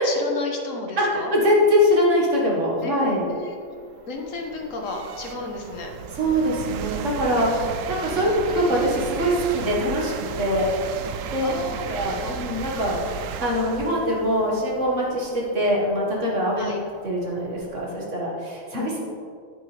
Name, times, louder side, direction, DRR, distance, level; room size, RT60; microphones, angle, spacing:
voice 1, 0.0-1.4 2.8-2.9 3.2-3.6 4.1-5.9 7.8-8.3 11.4-12.4 16.6-16.8, left 3 dB, 80° left, 2 dB, 1.5 m, -33 dB
voice 2, 1.0-3.2 6.2-11.0 11.3-11.5 11.8-13.0 13.4-16.7 17.0-19.0, equal, 70° right, -3 dB, 2.1 m, -23 dB
sound 1, 2.4-2.5 3.1-17.9, right 6 dB, 85° right, 1.0 m, -35 dB
9.1 x 8.4 x 3.3 m, 2.2 s
omnidirectional pair, 1.3 m